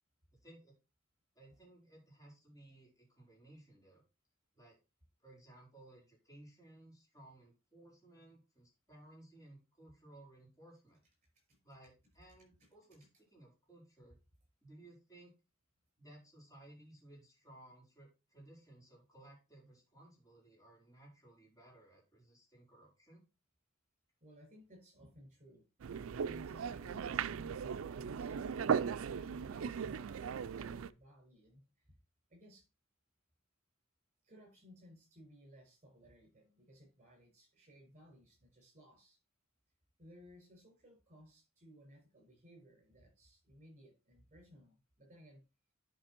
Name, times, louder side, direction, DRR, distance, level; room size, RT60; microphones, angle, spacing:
voice 1, 0.3-0.7 1.3-4.0 4.5-4.8 5.2-11.0 11.6-14.2 14.6-15.3 16.0-23.2, right 1 dB, 15° left, -3 dB, 4.8 m, -59 dB
voice 2, 24.2-25.6 26.2-28.3 28.6-31.9 32.3-32.7 34.2-39.2 40.0-45.4, equal, 35° right, 2 dB, 5.6 m, -59 dB
sound 1, 25.8-30.9, right 7 dB, 75° right, 0.4 m, -37 dB
10.5 x 5.1 x 4.4 m, 0.29 s
head